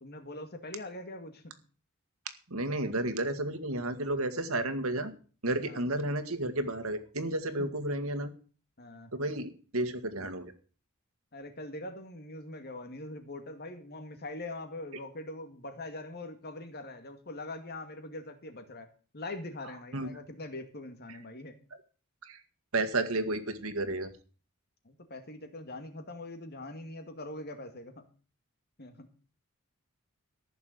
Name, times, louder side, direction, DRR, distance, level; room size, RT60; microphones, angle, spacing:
voice 1, 0.0-1.6 5.6-5.9 7.6-7.7 8.8-9.1 11.3-18.9 19.1-21.6 24.8-28.0 28.8-29.1, left 2 dB, 50° left, 8 dB, 2.2 m, -42 dB
voice 2, 2.5-5.1 5.4-8.3 9.1-10.5 19.9-20.1 22.2-22.4 22.7-24.1, right 2 dB, 75° right, 10 dB, 2.0 m, -32 dB
14.5 x 6.9 x 7.9 m, 0.38 s
head